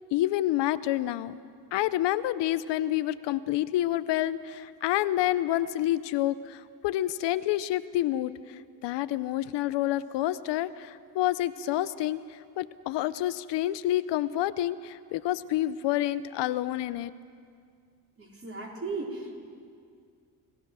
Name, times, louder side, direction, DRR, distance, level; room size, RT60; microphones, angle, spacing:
voice 1, 0.1-1.4 1.7-8.3 8.8-17.1, left 14 dB, 90° left, 15 dB, 0.7 m, -28 dB
voice 2, 18.2-19.4, right 3 dB, 35° right, -2 dB, 4.5 m, -36 dB
27.0 x 15.5 x 6.3 m, 2.2 s
cardioid pair, 90°, 41 cm